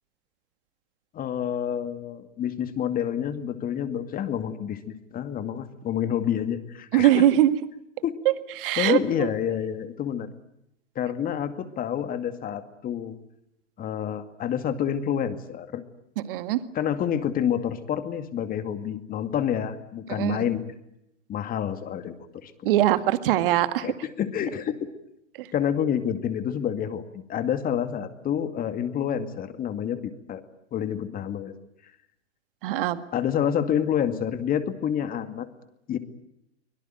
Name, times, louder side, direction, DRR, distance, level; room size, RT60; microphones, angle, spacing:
voice 1, 1.1-7.3 8.0-8.2 8.8-10.3 11.0-13.1 13.8-15.8 16.7-20.7 21.3-22.5 23.8-24.9 25.5-30.4 30.7-31.5 33.1-35.5 35.9-36.0, left 9 dB, 25° left, 10 dB, 2.2 m, -28 dB
voice 2, 6.9-7.6 8.6-9.3 16.3-16.6 20.1-20.4 22.6-23.9 25.4-25.5 32.6-33.0, right 13 dB, 50° right, 12 dB, 2.0 m, -22 dB
24.5 x 23.0 x 9.2 m, 0.81 s
figure-of-eight pair, 105°, 35 cm